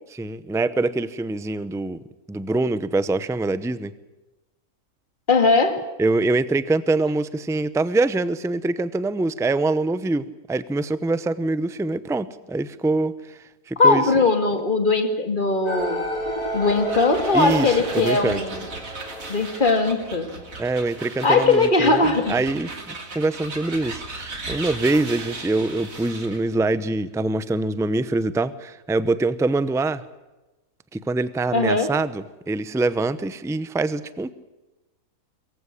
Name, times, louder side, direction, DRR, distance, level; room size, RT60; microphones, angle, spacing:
voice 1, 0.1-2.0 2.3-3.9 6.0-14.0 17.3-18.4 20.6-30.0 30.9-34.3, right 2 dB, 5° right, 15 dB, 0.5 m, -24 dB
voice 2, 5.3-5.8 13.8-16.1 16.5-18.7 19.3-20.3 21.2-22.4 31.5-31.9, left 3 dB, 35° left, 7 dB, 2.4 m, -20 dB
sound 1, 15.7-20.8, equal, 75° left, 4.9 m, -31 dB
sound 2, 16.4-26.5, right 3 dB, 65° right, 3.1 m, -37 dB
22.5 x 15.5 x 9.9 m, 1.1 s
omnidirectional pair, 1.6 m